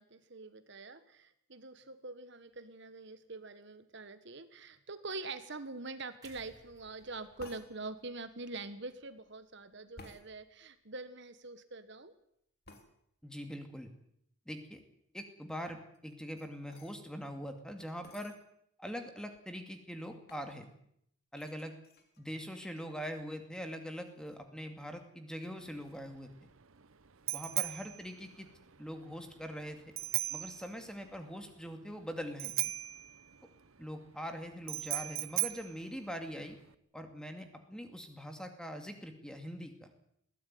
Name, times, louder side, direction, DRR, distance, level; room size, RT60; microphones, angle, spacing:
voice 1, 0.0-12.1, right 3 dB, 55° right, 11 dB, 1.5 m, -45 dB
sound 1, 6.2-10.2 10.6-10.8, right 2 dB, 15° right, 5.2 m, -64 dB
sound 2, 7.4-7.7 10.0-10.2 12.6-12.9 15.9-17.0 18.0-18.4 19.1-19.2 19.3-19.7 20.3-20.5 21.3-22.8 23.2-23.6 23.9-24.4, left 2 dB, 45° left, 3.1 m, -56 dB
voice 2, 13.2-13.9 14.5-14.8 15.1-18.3 18.8-20.7 21.3-21.7 22.2-26.5 27.3-28.5 28.8-29.8 30.3-32.5 33.8-36.6 36.9-39.9, equal, 5° left, 6 dB, 2.3 m, -43 dB
Bicycle bell, 25.6-36.7, right 16 dB, 70° right, 1.0 m, -39 dB
21.0 x 16.5 x 9.5 m, 0.74 s
head